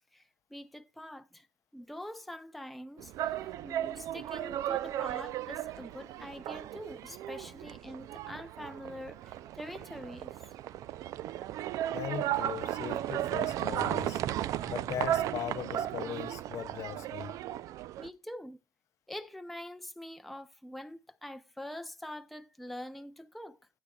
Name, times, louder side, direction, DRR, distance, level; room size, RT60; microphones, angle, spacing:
voice 1, 0.1-1.5 1.7-10.5 18.0-18.6 19.1-23.6, left 1 dB, ahead, 0.5 m, -45 dB
sound 1, 3.0-18.1, right 12 dB, 65° right, 0.4 m, -35 dB
voice 2, 11.9-14.2 14.7-17.3, left 10 dB, 55° left, 0.6 m, -39 dB
15.5 x 8.7 x 2.3 m
cardioid pair, 115°, 6 cm